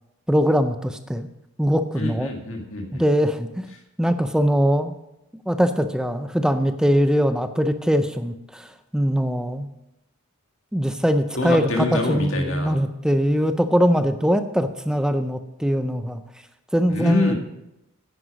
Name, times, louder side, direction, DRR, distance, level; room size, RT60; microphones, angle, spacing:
voice 1, 0.3-1.3 1.6-2.3 2.9-3.7 4.0-5.0 5.5-9.7 10.7-16.2 16.7-17.3, equal, 5° right, 9 dB, 0.4 m, -21 dB
voice 2, 1.9-3.0 11.4-12.8 16.9-17.3, left 2 dB, 60° left, 2 dB, 1.9 m, -25 dB
9.9 x 9.6 x 5.1 m, 0.87 s
head